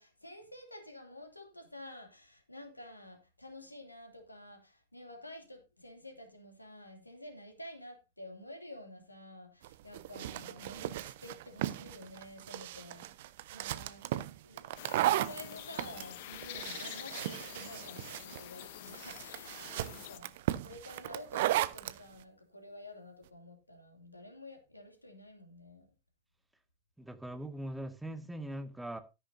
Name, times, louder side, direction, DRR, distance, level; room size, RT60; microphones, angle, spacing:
voice 1, 0.0-13.1 13.5-14.1 14.4-20.3 20.6-25.9, left 1 dB, 85° left, 2.6 m, -50 dB
sound 1, 9.6-22.0, right 14 dB, 55° right, 0.6 m, -36 dB
sound 2, 14.8-20.2, left 14 dB, 50° left, 0.8 m, -47 dB
voice 2, 27.0-29.0, right 1 dB, 5° right, 1.2 m, -41 dB
13.0 x 10.5 x 2.7 m
figure-of-eight pair, 90°, 0 cm